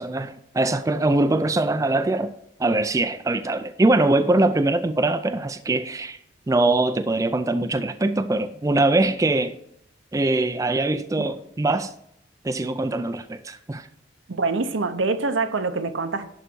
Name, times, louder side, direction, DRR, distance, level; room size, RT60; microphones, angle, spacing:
voice 1, 0.0-2.3 2.6-6.2 6.5-9.6 10.1-11.9 12.4-13.9, right 2 dB, 15° right, 0.3 m, -22 dB
voice 2, 14.3-16.3, right 3 dB, 75° right, 0.8 m, -25 dB
11.0 x 4.0 x 6.0 m
head